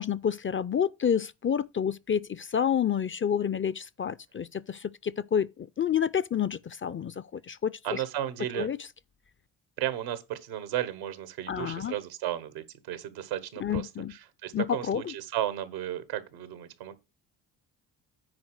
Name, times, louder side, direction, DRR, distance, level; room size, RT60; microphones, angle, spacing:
voice 1, 0.0-8.0 8.5-8.8 11.5-11.9 13.6-14.1 14.5-15.1, left 8 dB, 25° left, 0.4 m, -29 dB
voice 2, 7.8-8.7 9.8-16.9, right 12 dB, 90° right, 1.3 m, -34 dB
9.5 x 4.4 x 6.4 m
hypercardioid pair, 50°, 49 cm